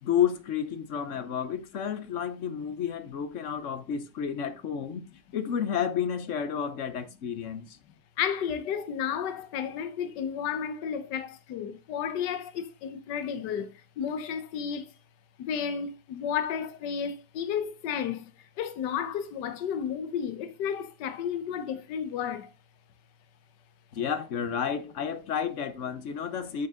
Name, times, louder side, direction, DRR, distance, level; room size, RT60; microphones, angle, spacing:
voice 1, 0.0-5.0 5.3-7.8 23.9-26.7, left 8 dB, 55° left, 0.9 m, -31 dB
voice 2, 8.2-14.9 15.4-18.3 18.6-22.5, left 8 dB, 75° left, 1.5 m, -32 dB
7.1 x 6.5 x 3.6 m
omnidirectional pair, 1.9 m